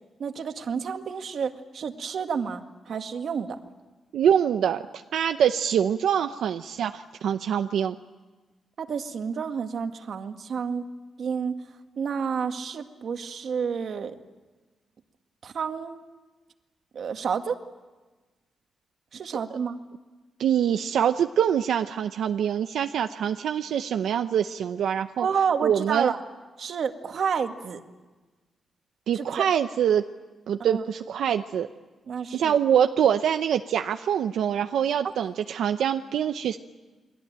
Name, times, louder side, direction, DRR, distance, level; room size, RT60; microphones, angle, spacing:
voice 1, 0.2-3.6 8.8-10.8 11.2-11.6 12.0-14.2 15.4-16.0 16.9-17.6 19.1-19.8 25.2-26.2 26.6-27.8 29.1-29.5 30.6-30.8 32.1-32.6, right 6 dB, 65° right, 6 dB, 1.9 m, -30 dB
voice 2, 4.1-4.8 5.1-7.9 20.4-25.3 25.6-26.1 29.1-30.0 30.5-31.7 32.3-36.6, right 9 dB, 90° right, 7 dB, 0.8 m, -24 dB
29.5 x 22.5 x 8.9 m, 1.3 s
cardioid pair, 115°, 0 cm